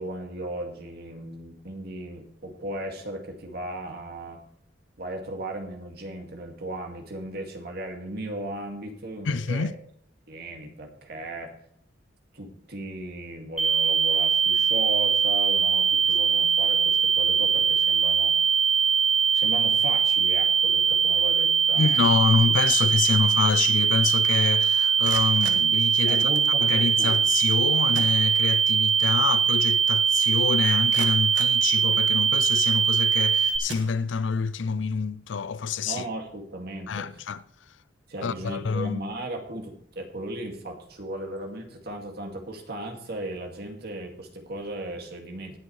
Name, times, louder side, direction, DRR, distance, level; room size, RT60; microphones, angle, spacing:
voice 1, 0.0-4.4 5.0-9.8 10.3-11.5 12.3-18.4 19.3-22.1 26.0-27.2 35.9-37.1 38.1-45.6, right 1 dB, 55° right, 2.2 m, -36 dB
voice 2, 9.3-9.7 21.8-26.3 26.6-36.0 36.9-37.4 38.2-39.0, left 5 dB, 80° left, 0.5 m, -27 dB
sound 1, 13.6-33.6, right 7 dB, 5° right, 1.2 m, -22 dB
sound 2, 24.8-26.5 27.5-27.6 27.9-28.8 29.2-29.3 29.8-29.9 30.5-32.3 33.0-33.2 33.6-34.5, right 5 dB, 80° right, 1.7 m, -41 dB
19.5 x 7.9 x 3.2 m
head